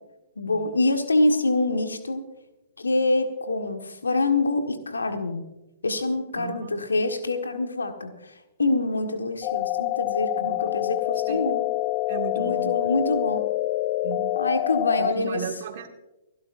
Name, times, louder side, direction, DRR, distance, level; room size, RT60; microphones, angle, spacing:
voice 1, 0.4-2.2 2.8-5.4 5.8-8.1 8.6-11.7 12.4-13.4 14.4-15.4, left 2 dB, 75° left, 6 dB, 1.6 m, -25 dB
voice 2, 6.4-6.8 10.4-10.7 11.3-11.5 12.1-12.8 14.0-14.4 15.0-15.9, right 9 dB, 50° right, 3 dB, 2.0 m, -36 dB
sound 1, 9.4-15.1, left 16 dB, 35° left, 0.5 m, -26 dB
29.0 x 11.5 x 2.6 m, 0.98 s
figure-of-eight pair, 115°, 0 cm